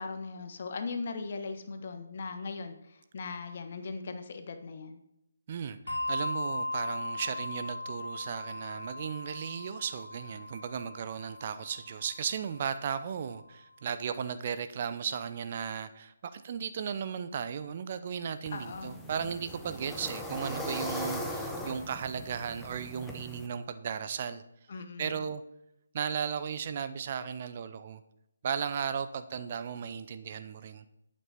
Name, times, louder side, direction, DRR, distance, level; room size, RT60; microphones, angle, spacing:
voice 1, 0.0-5.0 18.5-19.0 24.7-25.2, left 4 dB, 45° left, 7 dB, 1.3 m, -39 dB
Bell, 5.9-12.7, left 2 dB, 70° left, 1.7 m, -38 dB
voice 2, 6.1-24.4 25.0-25.4 25.9-28.0 28.4-30.9, right 7 dB, 35° right, 11 dB, 0.6 m, -35 dB
sound 1, 18.5-23.5, left 1 dB, ahead, 1.0 m, -39 dB
10.5 x 8.7 x 4.2 m, 0.82 s
figure-of-eight pair, 145°, 0 cm